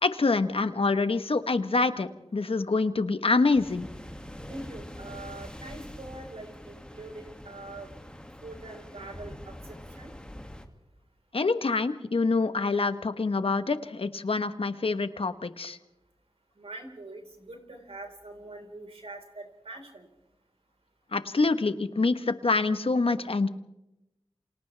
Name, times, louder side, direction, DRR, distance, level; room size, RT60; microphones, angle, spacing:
voice 1, 0.0-3.9 11.3-15.8 21.1-23.5, left 3 dB, 65° left, 10 dB, 1.2 m, -26 dB
sound 1, 3.5-10.7, equal, 10° left, 2.1 m, -44 dB
voice 2, 4.4-7.9 8.4-10.1 16.6-20.1, right 2 dB, 75° right, 2 dB, 4.3 m, -44 dB
29.0 x 26.5 x 3.4 m, 0.94 s
cardioid pair, 40°, 10 cm